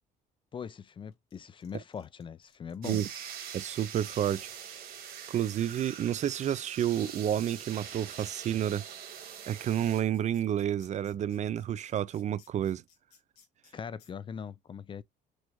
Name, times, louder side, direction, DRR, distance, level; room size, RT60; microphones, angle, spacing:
voice 1, 0.5-3.0 13.7-15.0, left 7 dB, 30° left, 0.4 m, -41 dB
sound 1, 1.1-3.1 3.8-3.9 4.2-4.9 5.3-5.4 5.6-13.7 14.0-14.1, left 7 dB, 75° left, 2.6 m, -63 dB
sound 2, 2.8-10.0, right 8 dB, 60° right, 1.7 m, -44 dB
voice 2, 3.5-4.5 5.3-8.8 9.5-12.8, right 10 dB, 45° right, 0.4 m, -30 dB
6.3 x 2.5 x 2.9 m
cardioid pair, 110°, 17 cm